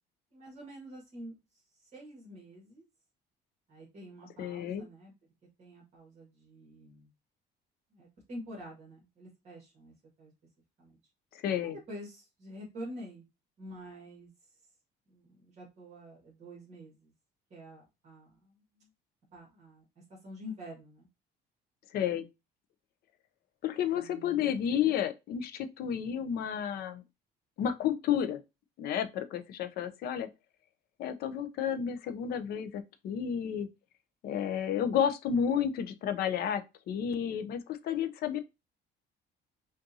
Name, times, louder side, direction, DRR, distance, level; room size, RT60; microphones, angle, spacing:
voice 1, 0.3-1.4 1.8-2.8 3.7-5.1 5.6-7.1 7.9-10.3 10.8-11.0 11.6-13.2 13.6-14.3 15.1-17.1 17.5-18.9 19.3-19.8 20.1-21.1 23.9-24.4, equal, 40° right, 1.9 m, -47 dB
voice 2, 4.4-4.8 11.3-11.8 21.9-22.2 23.6-27.0 27.6-28.4 28.8-30.3 31.0-33.7 34.2-36.6 36.9-38.4, left 8 dB, 60° left, 0.6 m, -31 dB
5.3 x 2.6 x 2.7 m
cardioid pair, 150°, 18 cm